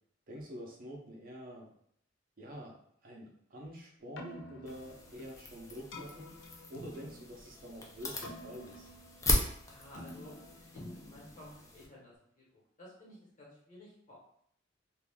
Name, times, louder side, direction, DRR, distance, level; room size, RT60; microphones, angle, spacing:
voice 1, 0.3-1.7 2.4-6.4 6.7-8.9, equal, 50° right, -1 dB, 0.6 m, -47 dB
Keyboard (musical), 4.0-12.1, left 1 dB, 80° left, 0.5 m, -51 dB
sound 1, 4.7-11.9, left 1 dB, 15° left, 0.5 m, -38 dB
voice 2, 9.7-14.2, left 1 dB, 45° left, -6 dB, 1.3 m, -53 dB
2.5 x 2.4 x 3.5 m, 0.67 s
head